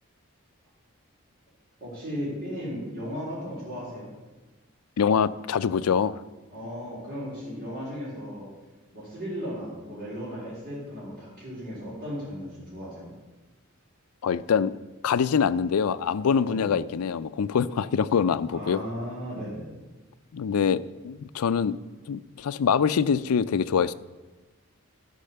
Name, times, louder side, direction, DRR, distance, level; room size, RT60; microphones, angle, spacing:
voice 1, 1.8-4.1 6.5-8.4 8.9-13.1 16.4-16.7 18.5-19.7, equal, 40° right, -10 dB, 4.1 m, -36 dB
voice 2, 5.0-6.2 14.2-14.7 15.0-18.8 20.3-21.8 22.1-23.9, left 6 dB, 85° left, 16 dB, 0.4 m, -24 dB
12.0 x 5.5 x 6.7 m, 1.2 s
head